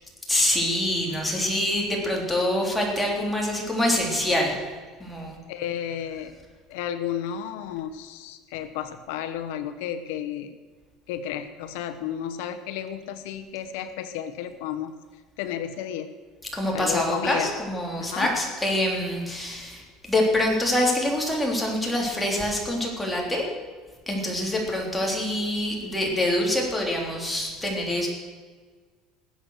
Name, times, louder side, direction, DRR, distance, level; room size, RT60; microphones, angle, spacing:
voice 1, 0.3-4.6 5.0-5.4 16.5-23.4 24.1-28.1, left 1 dB, 5° left, -1 dB, 3.4 m, -25 dB
voice 2, 5.5-6.3 6.7-10.5 11.1-14.9 15.4-16.1 16.7-17.5 18.0-18.3, left 10 dB, 85° left, 9 dB, 1.0 m, -32 dB
20.0 x 8.2 x 6.5 m, 1.5 s
cardioid pair, 135°, 0 cm